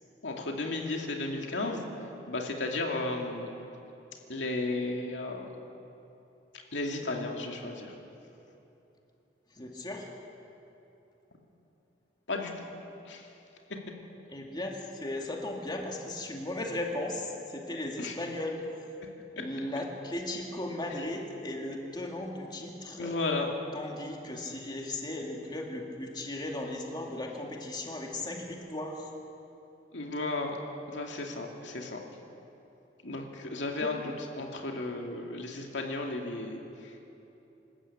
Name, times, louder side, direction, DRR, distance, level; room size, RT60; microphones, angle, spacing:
voice 1, 0.2-1.8 2.3-3.5 4.3-5.5 6.7-7.9 12.3-12.7 13.1-13.3 18.0-18.1 19.0-19.1 23.0-23.5 29.9-30.6 30.9-32.0 33.0-36.6, left 2 dB, 85° left, 1 dB, 2.5 m, -34 dB
voice 2, 9.5-10.1 14.3-18.6 19.4-23.2 23.7-29.1 33.8-34.1, left 1 dB, 25° left, 0 dB, 2.3 m, -36 dB
26.0 x 14.0 x 8.8 m, 3.0 s
head